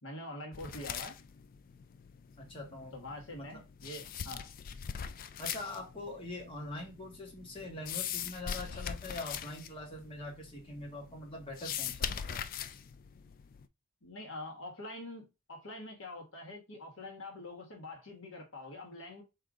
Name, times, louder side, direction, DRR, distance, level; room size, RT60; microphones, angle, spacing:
voice 1, 0.0-1.2 2.9-4.5 14.0-19.2, left 1 dB, 60° left, 1.5 m, -45 dB
sound 1, 0.5-13.7, left 8 dB, 40° left, 0.3 m, -42 dB
voice 2, 2.4-2.9 3.3-3.6 5.4-12.4, left 2 dB, 25° left, 1.5 m, -43 dB
3.9 x 2.7 x 4.8 m
head